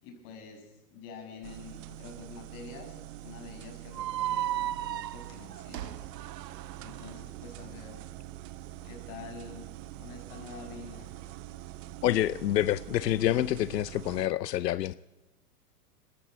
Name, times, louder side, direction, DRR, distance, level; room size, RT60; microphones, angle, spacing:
voice 1, 0.0-6.1 6.8-8.1 8.8-9.7 10.0-11.2, left 4 dB, 45° left, 7.7 m, -47 dB
sound 1, 1.4-14.3, right 15 dB, 50° right, 1.1 m, -45 dB
sound 2, 3.9-7.1, right 12 dB, 85° right, 0.8 m, -35 dB
voice 2, 12.0-14.9, left 13 dB, 90° left, 0.7 m, -27 dB
22.5 x 14.0 x 8.3 m
hypercardioid pair, 125°, 48 cm